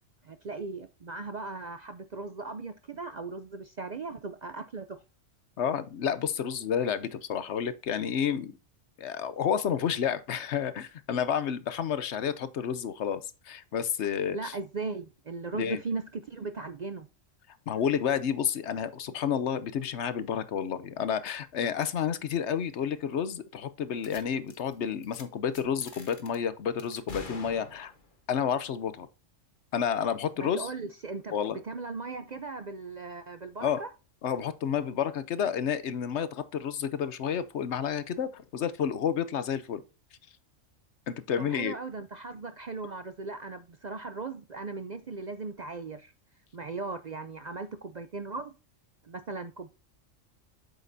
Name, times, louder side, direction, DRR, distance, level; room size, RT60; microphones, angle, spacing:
voice 1, 0.2-5.0 14.3-17.1 30.4-31.3 31.6-33.9 41.4-46.1 46.5-48.5 49.0-49.7, right 3 dB, 50° right, 0.5 m, -38 dB
voice 2, 5.6-8.5 9.0-13.2 13.5-14.5 15.5-15.8 17.7-27.9 28.3-29.1 29.7-30.7 31.3-31.6 33.6-33.8 34.2-39.8 41.1-41.7, left 8 dB, 65° left, 1.0 m, -30 dB
sound 1, 24.0-24.2 24.5-24.7 25.0-25.2 25.5-26.4 26.8-28.1, left 3 dB, 40° left, 1.3 m, -45 dB
8.1 x 6.1 x 2.7 m
omnidirectional pair, 1.3 m